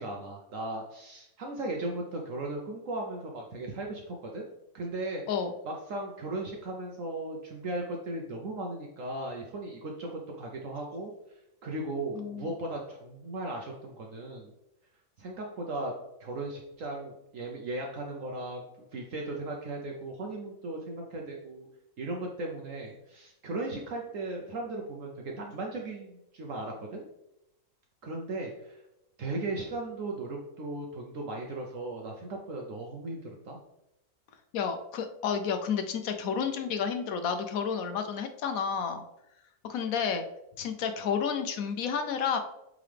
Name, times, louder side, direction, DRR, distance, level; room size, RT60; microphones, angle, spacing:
voice 1, 0.0-4.5 4.7-5.2 5.6-14.5 15.2-15.9 16.2-21.7 22.0-27.0 28.0-28.8 29.2-33.6, right 2 dB, 65° right, 0 dB, 1.1 m, -37 dB
voice 2, 12.1-12.5 34.5-39.0 39.7-40.2 40.6-42.4, left 6 dB, 70° left, 7 dB, 1.1 m, -31 dB
8.4 x 3.8 x 3.4 m, 0.86 s
omnidirectional pair, 1.6 m